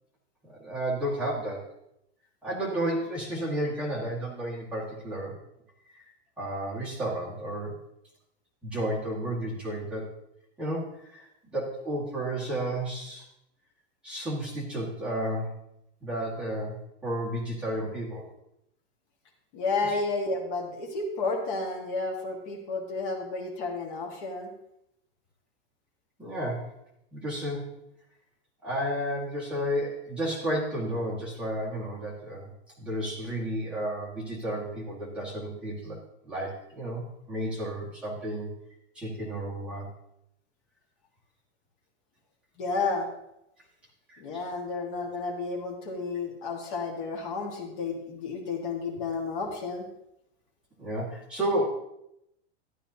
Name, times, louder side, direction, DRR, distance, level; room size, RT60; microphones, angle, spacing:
voice 1, 0.4-1.7 2.4-5.4 5.9-6.0 6.4-7.7 8.6-10.1 10.6-13.3 14.0-15.6 16.0-18.3 26.2-26.7 27.1-27.6 28.6-32.5 32.8-36.0 36.2-38.5 38.9-39.9 44.1-44.2 50.8-51.7, right 1 dB, 5° right, -8 dB, 1.8 m, -32 dB
voice 2, 19.5-24.5 42.6-43.1 44.2-49.8, left 3 dB, 45° left, 2 dB, 1.7 m, -31 dB
12.5 x 11.5 x 2.8 m, 0.82 s
supercardioid pair, 175°, 35 cm